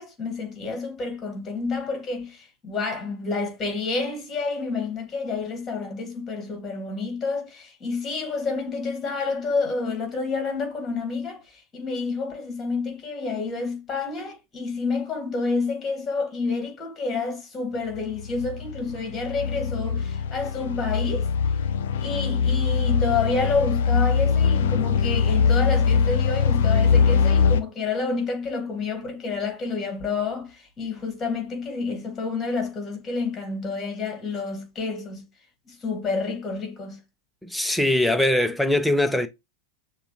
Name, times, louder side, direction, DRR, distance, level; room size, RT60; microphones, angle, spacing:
voice 1, 0.0-21.3 22.0-35.2 35.7-37.0, left 4 dB, 20° left, 1.6 m, -29 dB
sound 1, 17.9-27.6, left 6 dB, 55° left, 0.5 m, -22 dB
voice 2, 37.4-39.3, left 1 dB, ahead, 0.5 m, -21 dB
6.7 x 2.3 x 2.8 m
figure-of-eight pair, 90°, 0 cm